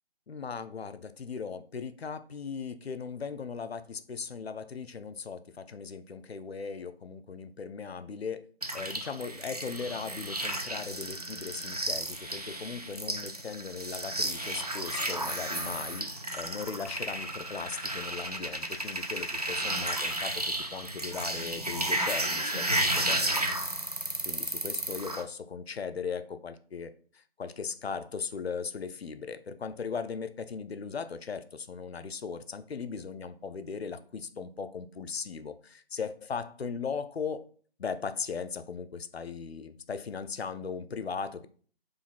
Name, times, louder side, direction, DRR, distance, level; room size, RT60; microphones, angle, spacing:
voice 1, 0.3-8.4 8.7-23.4 24.3-26.9 27.4-37.4 37.8-41.5, left 5 dB, 75° left, 10 dB, 0.5 m, -38 dB
sound 1, 8.6-25.2, right 1 dB, 40° right, 0.4 m, -33 dB
4.9 x 2.6 x 4.0 m, 0.44 s
figure-of-eight pair, 155°, 32 cm